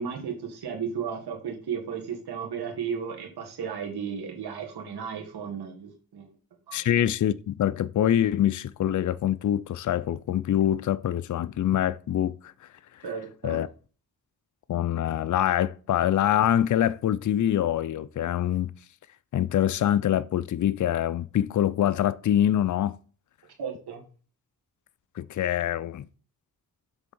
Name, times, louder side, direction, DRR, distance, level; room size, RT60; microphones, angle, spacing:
voice 1, 0.0-6.4 6.7-6.9 13.0-13.6 23.6-24.0, right 7 dB, 85° right, 1.9 m, -34 dB
voice 2, 6.7-12.5 13.4-13.7 14.7-18.7 19.3-22.9 25.2-26.1, left 11 dB, 55° left, 0.5 m, -25 dB
7.3 x 3.6 x 5.4 m
cardioid pair, 60°, 38 cm